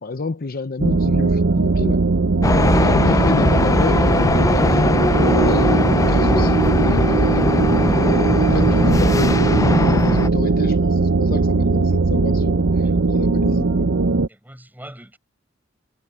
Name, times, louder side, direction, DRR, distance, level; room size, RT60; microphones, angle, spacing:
voice 1, 0.0-2.0 2.8-7.6 7.9-8.1 8.4-13.9, left 3 dB, 50° left, 0.7 m, -30 dB
sound 1, 0.8-14.3, right 3 dB, 80° right, 0.7 m, -19 dB
sound 2, 2.4-10.3, left 2 dB, 15° left, 0.4 m, -19 dB
voice 2, 14.3-15.2, right 1 dB, 10° right, 7.0 m, -42 dB
head